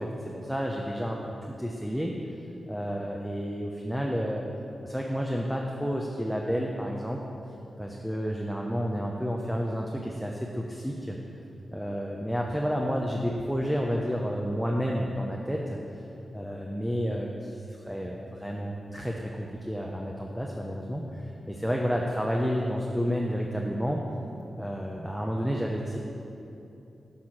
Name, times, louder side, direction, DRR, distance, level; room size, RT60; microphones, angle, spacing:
voice 1, 0.0-2.1 2.7-4.4 4.8-7.2 7.8-11.2 11.7-15.8 16.3-17.5 17.9-24.0 24.6-26.0, equal, 5° right, -1 dB, 0.7 m, -30 dB
8.4 x 4.3 x 6.2 m, 2.8 s
cardioid pair, 55°, 0 cm